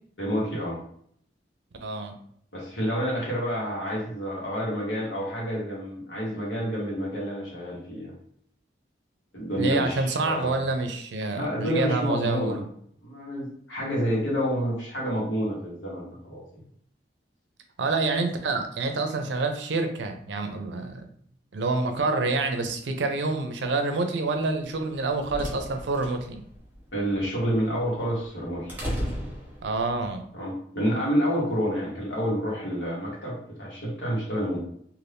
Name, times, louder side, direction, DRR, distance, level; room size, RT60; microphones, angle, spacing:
voice 1, 0.2-0.8 2.5-8.1 9.3-10.6 11.3-12.6 13.0-16.4 26.9-28.7 30.3-34.6, equal, 90° left, -4 dB, 1.3 m, -29 dB
voice 2, 1.8-2.1 9.6-12.7 17.8-21.0 21.5-26.4 29.6-30.2, right 3 dB, 80° right, 5 dB, 0.5 m, -27 dB
sound 1, 24.8-30.1, equal, 10° right, 0.8 m, -36 dB
2.6 x 2.5 x 3.4 m, 0.66 s
head